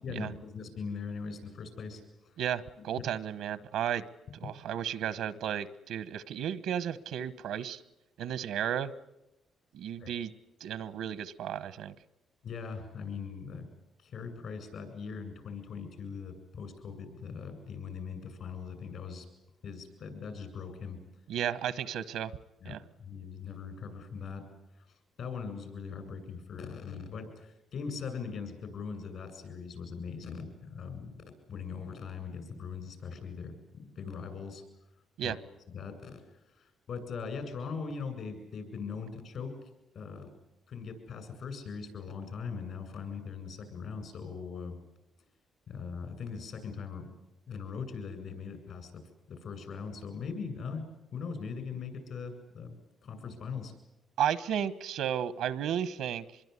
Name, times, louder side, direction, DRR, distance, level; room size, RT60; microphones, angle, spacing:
voice 1, 0.0-2.4 2.9-3.0 10.0-10.1 12.4-13.7 14.0-19.3 19.6-21.0 22.6-22.7 23.0-24.4 24.8-34.6 35.2-35.4 35.7-36.2 36.5-39.5 39.9-40.3 40.7-44.8 45.7-47.1 47.5-49.0 49.3-50.8 51.1-52.7 53.0-53.7, left 5 dB, 65° left, 9 dB, 8.0 m, -40 dB
voice 2, 2.4-4.1 4.3-7.8 8.2-8.9 9.7-10.3 10.6-11.9 21.3-22.3 22.6-22.8 35.2-35.4 54.2-56.2, right 9 dB, 85° right, 16 dB, 1.1 m, -33 dB
25.5 x 22.0 x 9.8 m, 0.88 s
cardioid pair, 90°, 0 cm